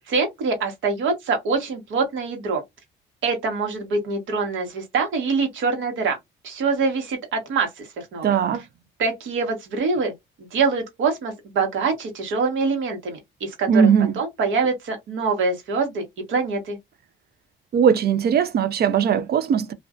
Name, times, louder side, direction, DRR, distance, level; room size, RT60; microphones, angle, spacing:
voice 1, 0.1-2.6 3.2-6.2 6.4-8.3 9.0-10.1 10.4-13.9 14.2-16.8, right 4 dB, 75° right, 1.1 m, -24 dB
voice 2, 8.2-8.6 13.7-14.1 17.7-19.7, right 7 dB, 55° right, 0.5 m, -19 dB
2.5 x 2.2 x 2.3 m
cardioid pair, 90°, 20 cm